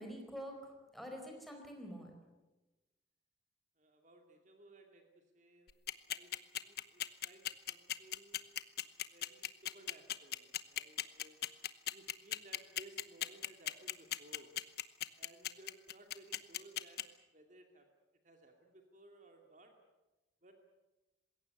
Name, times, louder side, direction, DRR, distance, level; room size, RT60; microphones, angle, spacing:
voice 1, 0.0-2.1, equal, ahead, 2 dB, 4.5 m, -47 dB
voice 2, 3.8-5.8 6.1-8.6 9.0-11.4 11.9-14.6 15.2-17.0 17.3-17.9 18.2-19.7 20.4-20.5, right 2 dB, 45° right, 4 dB, 2.4 m, -60 dB
sound 1, 5.7-17.0, left 12 dB, 55° left, 1.0 m, -37 dB
21.0 x 17.0 x 9.6 m, 1.1 s
head